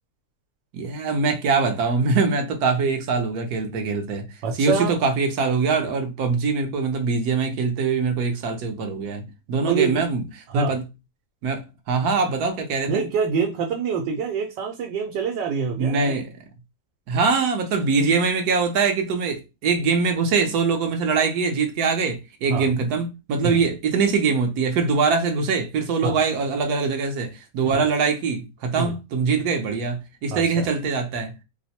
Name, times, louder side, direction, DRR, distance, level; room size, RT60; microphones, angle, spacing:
voice 1, 0.7-4.3 4.6-10.3 10.5-10.8 11.4-11.6 11.9-13.0 15.8-16.3 17.1-31.3, right 4 dB, 65° right, 1.1 m, -23 dB
voice 2, 4.4-4.9 9.7-10.0 10.5-10.7 12.9-16.2 22.5-22.7 23.4-23.6 26.0-26.2 27.7-27.8 28.8-28.9 30.3-30.7, right 5 dB, 85° right, 1.3 m, -25 dB
3.0 x 2.0 x 4.1 m
omnidirectional pair, 1.9 m